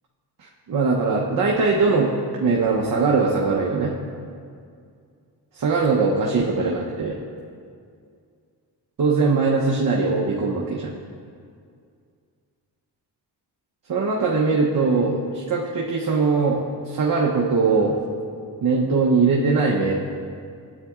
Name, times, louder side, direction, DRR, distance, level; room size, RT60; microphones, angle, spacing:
voice 1, 0.4-2.1 2.4-3.9 5.5-7.2 9.0-10.9 13.9-18.0 18.6-19.9, right 4 dB, 50° right, -3 dB, 0.8 m, -21 dB
9.8 x 8.1 x 2.4 m, 2.3 s
cardioid pair, 70°, 42 cm